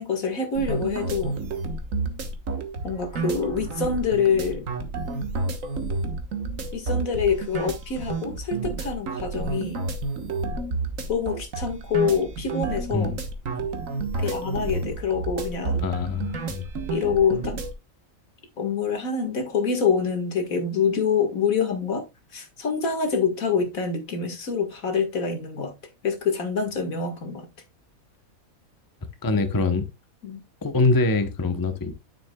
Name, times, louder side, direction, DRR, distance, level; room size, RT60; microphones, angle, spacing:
voice 1, 0.0-1.4 2.8-4.7 6.7-9.8 11.1-13.1 14.2-15.9 16.9-17.6 18.6-22.1 22.3-25.7 26.0-27.5 30.2-30.4, left 6 dB, 75° left, 2.1 m, -26 dB
sound 1, 0.5-17.7, right 3 dB, 70° right, 1.6 m, -30 dB
voice 2, 15.8-16.7 29.2-29.8 30.6-31.9, left 3 dB, 20° left, 0.7 m, -24 dB
9.4 x 7.1 x 2.3 m
omnidirectional pair, 1.4 m